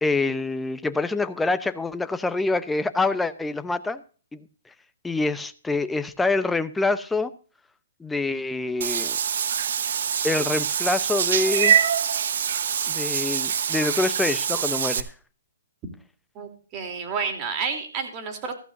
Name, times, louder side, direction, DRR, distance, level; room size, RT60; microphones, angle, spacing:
voice 1, 0.0-4.0 4.3-4.4 5.0-7.3 8.0-9.2 10.2-11.8 12.9-15.1, left 3 dB, 5° left, 11 dB, 0.8 m, -26 dB
Meow / Water / Bathtub (filling or washing), 8.8-15.0, right 8 dB, 60° right, 1.1 m, -24 dB
voice 2, 16.3-18.5, right 5 dB, 30° right, 5 dB, 3.2 m, -30 dB
14.5 x 14.0 x 2.6 m, 0.39 s
hypercardioid pair, 140°, 0 cm